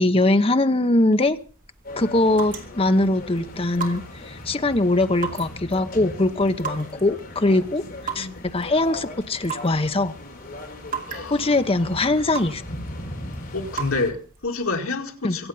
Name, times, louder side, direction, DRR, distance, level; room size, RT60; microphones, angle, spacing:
voice 1, 0.0-1.4 2.0-7.8 8.1-10.1 11.3-12.6 15.2-15.4, left 2 dB, 25° left, 0.9 m, -21 dB
sound 1, 1.1-14.7, right 6 dB, 40° right, 2.6 m, -38 dB
sound 2, 1.8-14.1, left 1 dB, 45° left, 4.4 m, -38 dB
voice 2, 7.8-8.4 11.1-11.5 13.5-15.5, left 3 dB, 75° left, 2.2 m, -29 dB
24.0 x 8.2 x 5.7 m
head